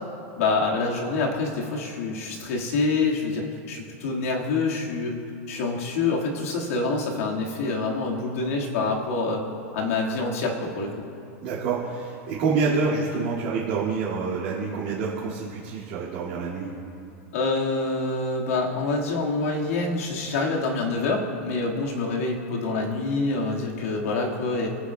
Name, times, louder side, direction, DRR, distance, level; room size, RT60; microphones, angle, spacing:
voice 1, 0.4-5.1 5.5-9.4 9.7-11.0 17.3-24.7, left 3 dB, 70° left, -1 dB, 1.8 m, -26 dB
voice 2, 11.4-16.7, right 4 dB, 40° right, -10 dB, 2.1 m, -27 dB
23.0 x 8.9 x 2.3 m, 2.5 s
supercardioid pair, 175°, 8 cm